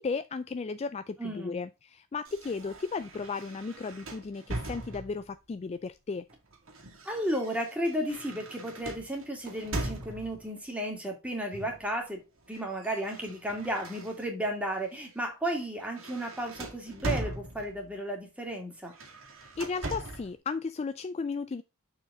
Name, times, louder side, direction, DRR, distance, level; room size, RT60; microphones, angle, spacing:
voice 1, 0.0-6.2 19.6-21.6, left 4 dB, 30° left, 0.3 m, -35 dB
voice 2, 1.2-1.6 7.0-12.2 12.5-18.9, right 1 dB, 5° right, 2.3 m, -33 dB
sound 1, 2.2-5.3 6.3-10.5 11.5-11.9 12.2-14.5 15.0-15.2 15.5-17.9 18.8-20.3, right 1 dB, 65° right, 2.2 m, -40 dB
6.5 x 4.9 x 3.7 m
head